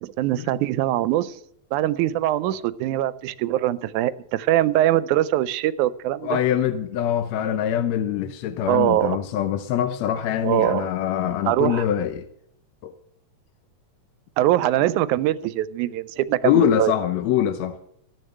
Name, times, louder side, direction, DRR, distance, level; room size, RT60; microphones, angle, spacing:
voice 1, 0.0-1.3 1.7-6.4 8.7-9.2 10.4-10.9 11.5-11.9 14.4-16.9, right 13 dB, 90° right, 2.1 m, -22 dB
voice 2, 6.2-12.3 12.8-12.9 16.4-17.8, left 10 dB, 75° left, 1.8 m, -23 dB
14.5 x 6.6 x 8.9 m
omnidirectional pair, 3.4 m